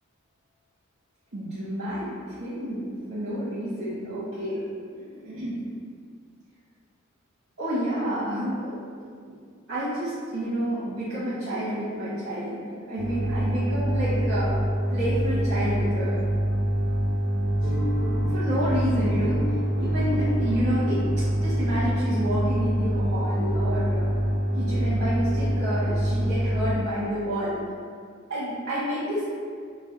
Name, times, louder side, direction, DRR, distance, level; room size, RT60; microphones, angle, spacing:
voice 1, 1.3-4.7 5.0-5.6 7.6-8.7 9.7-12.6 12.8-14.6 14.9-16.2 18.3-19.4 19.7-21.0 21.4-24.1 24.5-27.6 28.3-29.2, equal, 60° right, -12 dB, 0.9 m, -29 dB
sound 1, 13.0-26.7, right 1 dB, 75° right, 0.4 m, -25 dB
sound 2, 17.6-23.8, equal, 10° left, 1.3 m, -37 dB
3.2 x 2.2 x 3.8 m, 2.1 s
head